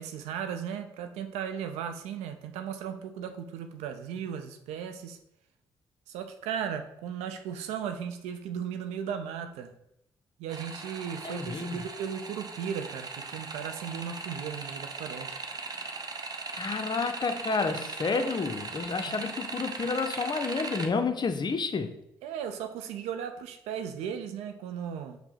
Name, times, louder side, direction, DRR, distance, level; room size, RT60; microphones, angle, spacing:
voice 1, 0.0-5.2 6.1-9.7 10.4-15.3 19.1-19.2 22.2-25.2, right 8 dB, 80° right, 0.4 m, -36 dB
sound 1, 10.5-20.9, right 3 dB, 35° right, 0.6 m, -39 dB
voice 2, 11.2-11.8 16.5-21.9, left 4 dB, 40° left, 0.5 m, -30 dB
5.3 x 2.1 x 4.4 m
hypercardioid pair, 40°, 11 cm